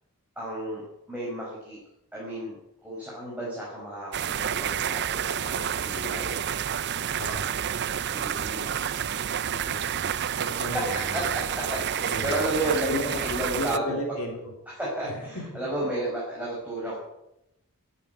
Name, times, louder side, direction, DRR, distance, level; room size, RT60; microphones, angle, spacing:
voice 1, 0.4-0.8 1.1-1.8 2.1-6.3 8.1-9.0 10.4-10.8 11.1-14.0 14.7-17.0, right 1 dB, 5° right, -6 dB, 5.5 m, -33 dB
sound 1, 4.1-13.8, right 9 dB, 50° right, 0.5 m, -29 dB
voice 2, 9.4-11.4 12.1-12.4 12.9-13.0 13.6-14.5 15.1-15.6, left 1 dB, 75° left, 0 dB, 3.5 m, -34 dB
14.5 x 9.0 x 9.5 m, 0.86 s
head